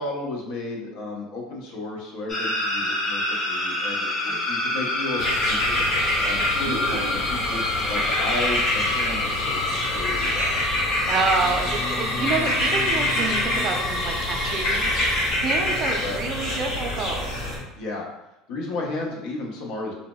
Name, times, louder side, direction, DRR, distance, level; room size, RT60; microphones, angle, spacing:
voice 1, 0.0-7.0 7.3-10.5 16.0-16.2 17.7-18.1 18.5-19.9, left 2 dB, 70° left, -2 dB, 0.8 m, -33 dB
sound 1, 2.3-15.3, left 1 dB, 35° left, 0.8 m, -28 dB
sound 2, 5.2-17.6, left 1 dB, 55° left, 1.2 m, -26 dB
voice 2, 6.7-7.2 11.1-17.3, right 4 dB, 40° right, 2 dB, 0.5 m, -28 dB
4.0 x 2.0 x 2.2 m, 0.89 s
supercardioid pair, 130°, 0 cm